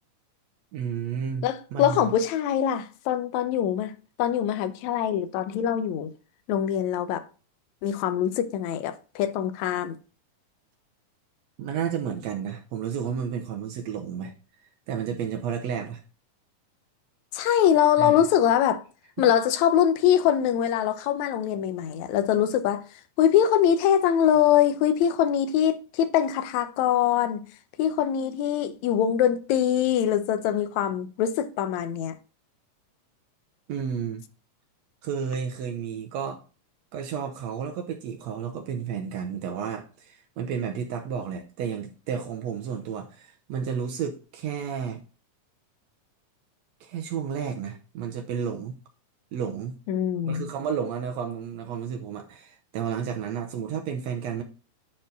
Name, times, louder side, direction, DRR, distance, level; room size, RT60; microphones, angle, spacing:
voice 1, 0.7-2.1 11.6-14.3 14.9-16.0 18.0-18.2 33.7-34.2 35.0-36.4 36.9-45.0 46.8-48.7 49.3-49.7 50.2-54.4, right 7 dB, 75° right, 1.6 m, -32 dB
voice 2, 1.4-6.1 6.5-7.2 7.8-10.0 17.3-18.8 19.2-22.8 23.2-27.4 27.8-32.1 49.9-50.5, left 9 dB, 75° left, 1.7 m, -23 dB
10.0 x 4.4 x 4.0 m
omnidirectional pair, 4.0 m